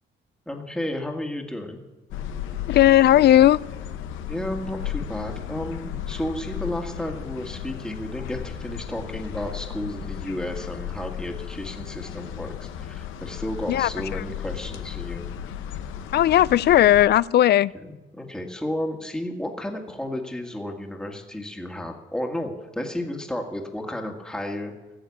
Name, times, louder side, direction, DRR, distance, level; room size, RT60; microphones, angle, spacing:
voice 1, 0.5-1.8 4.3-15.3 18.1-24.7, left 1 dB, 5° left, 1 dB, 1.8 m, -32 dB
sound 1, 2.1-17.1, left 9 dB, 90° left, 0.9 m, -35 dB
voice 2, 2.7-3.6 13.7-14.2 16.1-17.7, left 12 dB, 55° left, 21 dB, 0.4 m, -17 dB
15.0 x 7.2 x 8.5 m, 1.2 s
cardioid pair, 90°, 20 cm